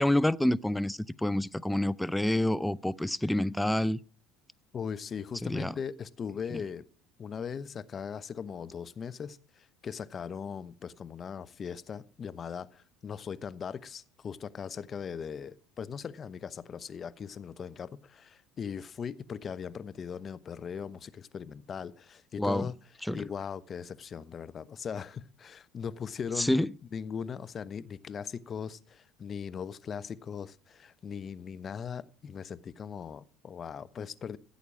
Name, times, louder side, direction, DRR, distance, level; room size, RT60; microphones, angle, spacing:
voice 1, 0.0-4.0 5.4-5.7 6.5-6.6 22.4-22.7 23.0-23.2 26.4-26.7, left 1 dB, 5° left, 0.5 m, -28 dB
voice 2, 4.7-6.8 7.2-22.7 23.1-26.5 26.9-34.4, left 7 dB, 40° left, 0.9 m, -39 dB
15.5 x 8.5 x 6.3 m
hypercardioid pair, 75°, 0 cm